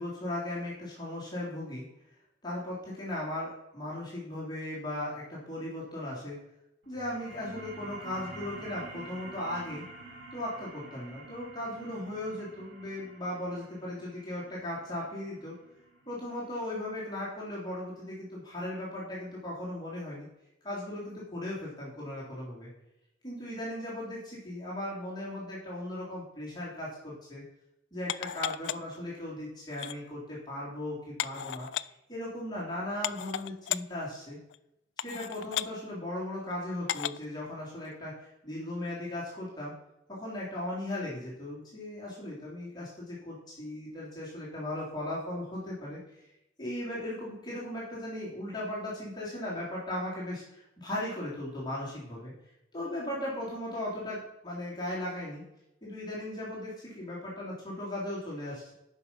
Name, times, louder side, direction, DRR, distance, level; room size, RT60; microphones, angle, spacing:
voice 1, 0.0-1.8 2.4-6.4 6.8-9.9 10.3-15.6 16.1-20.3 20.6-22.7 23.2-27.4 27.9-34.4 35.0-39.7 40.1-46.0 46.6-52.3 52.7-55.4 55.8-58.7, left 1 dB, 20° left, -7 dB, 3.3 m, -37 dB
sound 1, 6.8-17.9, right 2 dB, 80° right, 2.9 m, -48 dB
sound 2, 28.1-29.0 29.7-30.0 31.2-31.8 32.6-32.7 33.0-33.8 34.5-34.6 35.0-35.7 36.9-37.2 37.8-37.9, left 11 dB, 70° left, 0.3 m, -34 dB
9.8 x 5.7 x 6.0 m, 0.87 s
head